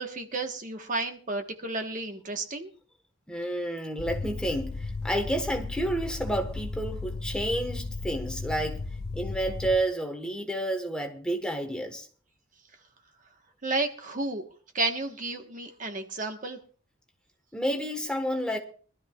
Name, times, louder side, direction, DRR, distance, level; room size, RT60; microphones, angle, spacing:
voice 1, 0.0-2.7 13.6-14.5 14.7-16.6, right 2 dB, 40° right, 1.2 m, -32 dB
voice 2, 3.3-8.8 9.1-12.1 17.5-18.6, right 1 dB, 5° left, 1.3 m, -30 dB
sound 1, 4.0-9.7, left 3 dB, 50° left, 0.9 m, -35 dB
23.5 x 13.0 x 2.4 m
head